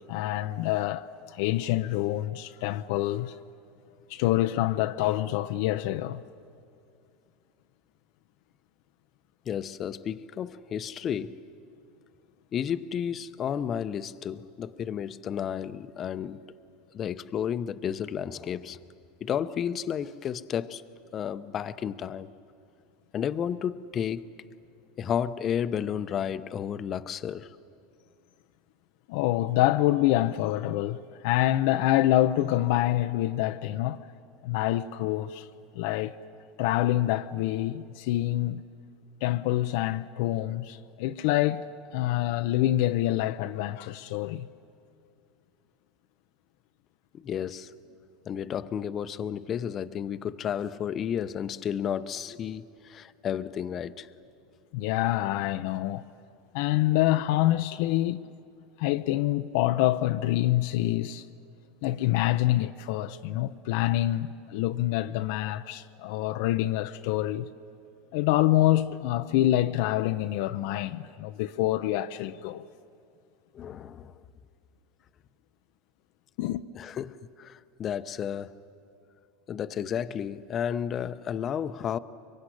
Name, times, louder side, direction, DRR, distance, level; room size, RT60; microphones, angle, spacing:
voice 1, 0.1-3.4 4.1-6.2 29.1-34.0 34.4-35.5 35.8-36.2 36.6-38.6 39.2-41.6 41.9-44.5 54.7-56.0 56.5-58.3 58.8-61.2 61.8-67.5 68.1-72.7 76.4-76.6, left 15 dB, 70° left, 0.6 m, -26 dB
voice 2, 9.5-11.4 12.5-16.4 16.9-18.8 19.2-20.8 21.1-22.3 23.1-24.2 25.0-27.6 47.1-47.7 48.3-54.1 73.5-74.1 76.7-78.5 79.5-82.0, left 8 dB, 35° left, 0.8 m, -32 dB
24.0 x 23.0 x 9.9 m
supercardioid pair, 105°, 0 cm